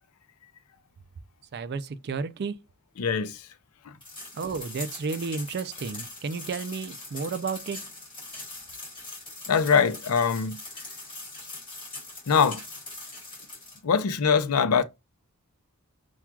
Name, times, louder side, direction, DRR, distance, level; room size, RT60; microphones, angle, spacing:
voice 1, 1.5-2.6 4.3-7.8, right 4 dB, 50° right, 0.4 m, -32 dB
voice 2, 3.0-3.5 3.8-4.0 9.5-10.6 12.3-12.6 13.8-14.8, left 6 dB, 80° left, 0.5 m, -23 dB
sound 1, 4.0-13.8, left 2 dB, 20° left, 2.1 m, -42 dB
5.8 x 2.3 x 2.3 m
head